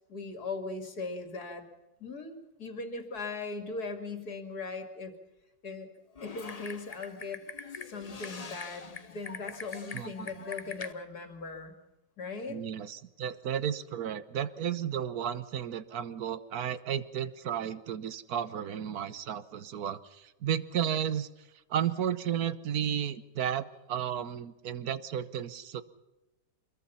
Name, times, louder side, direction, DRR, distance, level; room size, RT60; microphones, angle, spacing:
voice 1, 0.1-1.6 2.0-5.1 5.6-5.9 6.2-7.4 7.9-11.8 12.2-12.6, left 3 dB, 55° left, 6 dB, 3.0 m, -39 dB
Typing, 6.2-10.9, left 4 dB, 30° left, 0.8 m, -43 dB
voice 2, 9.9-10.4 12.5-21.3 21.7-25.8, right 9 dB, 60° right, 14 dB, 1.4 m, -33 dB
25.0 x 22.0 x 5.7 m, 1.0 s
omnidirectional pair, 1.9 m